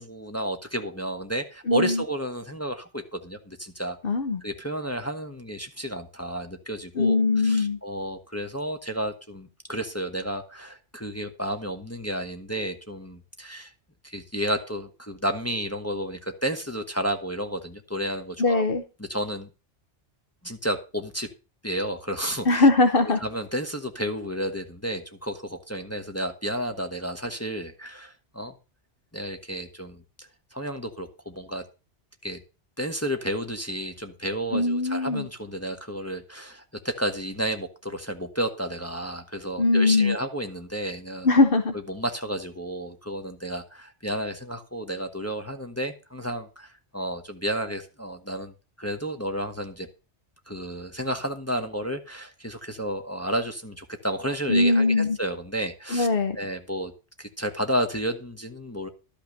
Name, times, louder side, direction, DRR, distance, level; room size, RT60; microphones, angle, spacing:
voice 1, 0.0-4.0 4.4-13.7 14.0-18.6 19.0-19.5 20.4-21.3 21.6-22.7 23.2-28.5 29.1-31.6 32.2-32.4 32.8-41.3 41.9-49.9 50.5-56.1 56.4-56.9 57.2-58.9, equal, 15° left, 5 dB, 1.0 m, -31 dB
voice 2, 1.7-2.0 4.0-4.4 7.0-7.8 18.4-18.8 22.4-23.2 34.5-35.3 39.6-40.2 41.2-41.7 54.5-55.2 55.9-56.4, left 3 dB, 55° left, 7 dB, 1.1 m, -21 dB
12.0 x 5.7 x 6.4 m, 0.32 s
omnidirectional pair, 1.2 m